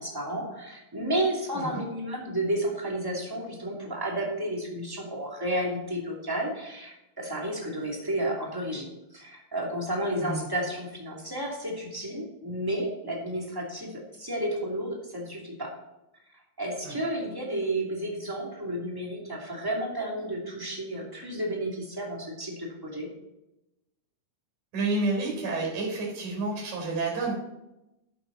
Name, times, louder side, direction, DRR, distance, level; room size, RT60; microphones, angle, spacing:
voice 1, 0.0-8.9 9.1-15.7 16.6-23.1, right 1 dB, 10° right, -2 dB, 1.9 m, -32 dB
voice 2, 24.7-27.3, right 3 dB, 55° right, -1 dB, 5.2 m, -29 dB
12.0 x 9.3 x 4.0 m, 0.92 s
omnidirectional pair, 4.1 m